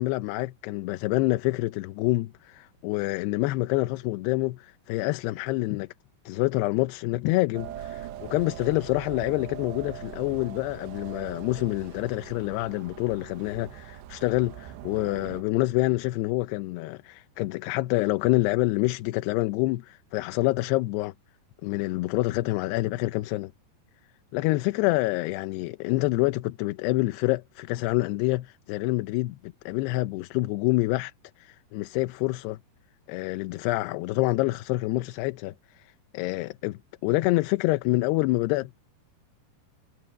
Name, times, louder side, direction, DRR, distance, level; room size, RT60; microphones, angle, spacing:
voice 1, 0.0-5.9 6.3-21.1 21.6-23.5 24.3-31.1 31.4-32.6 33.1-38.8, left 20 dB, 80° left, 2.7 m, -27 dB
sound 1, 7.5-15.4, right 11 dB, 85° right, 3.3 m, -41 dB
omnidirectional pair, 4.9 m